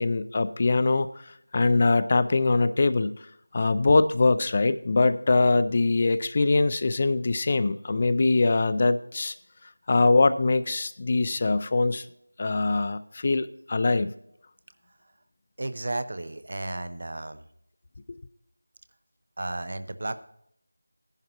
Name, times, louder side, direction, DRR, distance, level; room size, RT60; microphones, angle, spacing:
voice 1, 0.0-3.1 3.5-9.3 9.9-12.1 12.4-14.1 18.1-18.2, left 3 dB, 35° left, 13 dB, 0.4 m, -23 dB
voice 2, 15.6-17.5 19.4-20.3, right 2 dB, 55° right, 12 dB, 0.8 m, -33 dB
15.5 x 10.5 x 3.0 m, 0.72 s
figure-of-eight pair, 170°, 0 cm